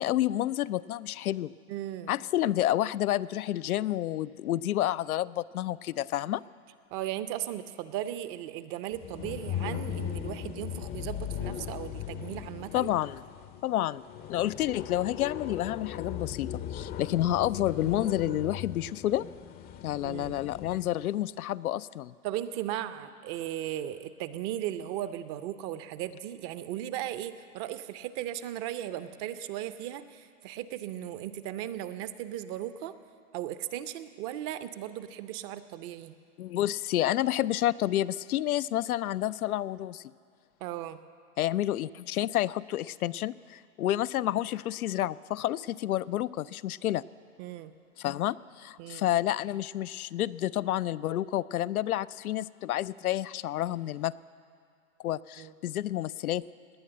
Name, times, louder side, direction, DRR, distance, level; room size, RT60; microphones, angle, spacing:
voice 1, 0.0-1.5 2.1-6.4 12.7-13.2 13.6-14.0 14.3-19.2 19.8-22.1 36.4-40.0 41.4-47.0 48.0-54.1 55.0-56.4, left 13 dB, 85° left, 16 dB, 0.5 m, -29 dB
voice 2, 1.7-2.1 6.9-12.9 20.0-20.4 22.2-32.9 33.3-36.1 40.6-41.0 47.4-47.7 48.8-49.1 55.4-55.5, right 12 dB, 35° right, 12 dB, 0.6 m, -37 dB
sound 1, 8.9-20.9, left 9 dB, 20° left, 0.6 m, -38 dB
19.0 x 9.0 x 7.8 m, 2.2 s
hypercardioid pair, 120°, 43 cm